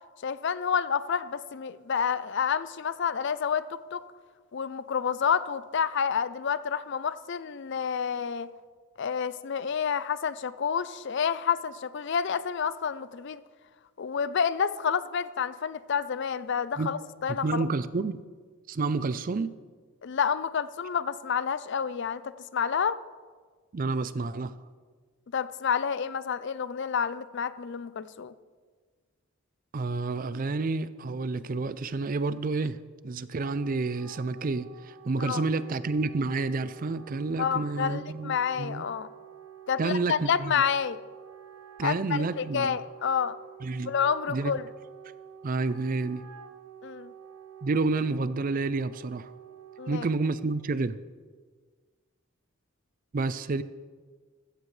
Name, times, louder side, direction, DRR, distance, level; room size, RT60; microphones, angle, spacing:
voice 1, 0.2-4.0 4.5-8.5 9.0-13.4 14.0-17.6 20.0-22.2 22.5-23.0 25.3-28.3 35.2-35.4 37.4-39.1 39.7-41.0 41.8-43.4 43.9-44.7 46.8-47.1 49.8-50.1, left 7 dB, 55° left, 15 dB, 0.4 m, -29 dB
voice 2, 17.4-18.2 18.7-19.5 23.7-24.5 29.7-32.8 33.0-38.8 39.8-40.5 41.8-42.8 43.6-43.9 44.3-44.5 45.4-46.2 47.6-49.3 49.9-51.0 53.1-53.6, right 3 dB, 40° right, 15 dB, 0.4 m, -29 dB
Wind instrument woodwind instrument, 33.1-50.6, right 8 dB, 90° right, 0.8 m, -49 dB
14.5 x 14.5 x 3.2 m, 1.5 s
head